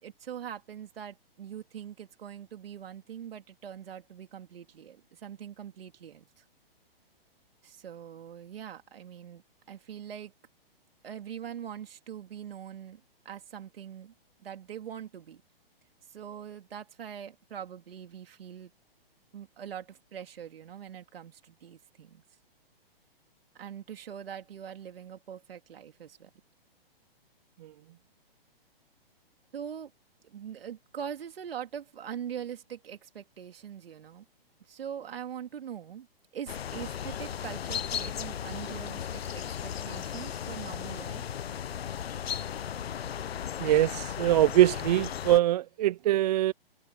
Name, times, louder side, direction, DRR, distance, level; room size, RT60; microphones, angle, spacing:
voice 1, 0.0-6.4 7.6-10.3 11.0-14.1 14.4-15.4 16.1-18.7 19.3-22.2 23.5-26.3 29.5-29.9 30.2-34.3 34.6-36.1 36.3-41.4, right 9 dB, 70° right, 3.6 m, -42 dB
sound 1, 36.5-45.4, left 9 dB, 80° left, 0.9 m, -36 dB
voice 2, 43.6-46.5, right 14 dB, 40° right, 0.5 m, -23 dB
hypercardioid pair, 140°, 30 cm